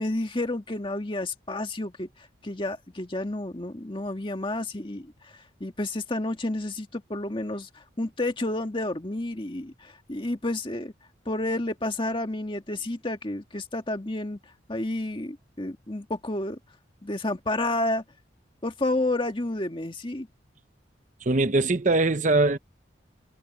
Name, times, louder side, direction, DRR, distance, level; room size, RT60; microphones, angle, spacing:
voice 1, 0.0-2.1 2.4-5.3 5.6-10.9 11.3-14.4 14.7-16.6 17.0-18.0 18.6-20.3, left 2 dB, 25° left, 1.8 m, -30 dB
voice 2, 21.2-22.6, right 2 dB, 40° right, 0.8 m, -22 dB
head